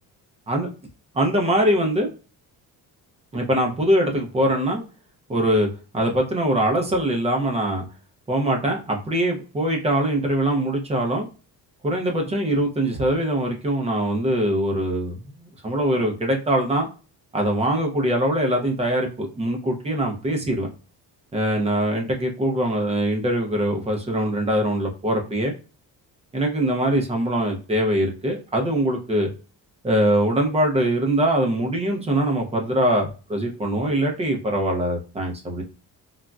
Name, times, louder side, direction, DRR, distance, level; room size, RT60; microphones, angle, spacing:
voice 1, 1.1-2.1 3.3-4.8 5.3-5.7 5.9-7.8 8.3-11.3 11.8-16.9 17.3-20.7 21.3-25.5 26.3-29.3 29.8-35.6, right 1 dB, 15° right, 2 dB, 0.5 m, -22 dB
3.8 x 2.1 x 2.3 m, 0.34 s
cardioid pair, 160°, 39 cm